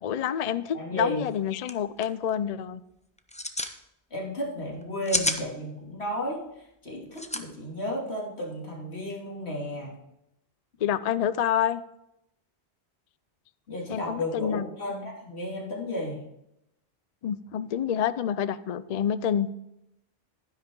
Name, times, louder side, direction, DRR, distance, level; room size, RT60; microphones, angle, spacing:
voice 1, 0.0-2.8 10.8-11.8 13.9-14.7 17.2-19.5, left 9 dB, 55° left, 15 dB, 0.4 m, -28 dB
voice 2, 0.7-1.2 4.1-10.0 13.7-16.2, left 1 dB, 80° left, -3 dB, 3.0 m, -33 dB
sound 1, 1.3-1.4 1.6-1.7 2.0-2.3 3.2-3.7 4.8-5.4 7.1-7.4, left 1 dB, 10° left, 0.6 m, -28 dB
11.5 x 10.5 x 3.8 m, 0.82 s
omnidirectional pair, 1.1 m